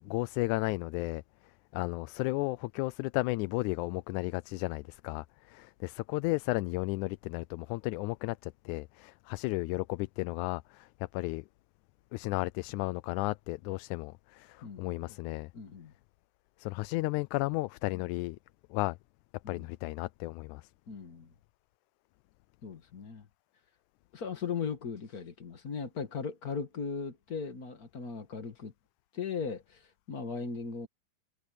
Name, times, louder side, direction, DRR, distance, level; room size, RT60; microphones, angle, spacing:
voice 1, 0.0-11.5 12.1-15.5 16.6-18.4 18.7-19.0 19.5-20.7, left 21 dB, 90° left, 2.0 m, -34 dB
voice 2, 14.6-15.1 15.5-15.9 19.4-19.7 20.9-21.3 22.6-23.3 24.1-28.7 29.1-30.9, left 5 dB, 35° left, 1.8 m, -38 dB
omnidirectional pair, 3.4 m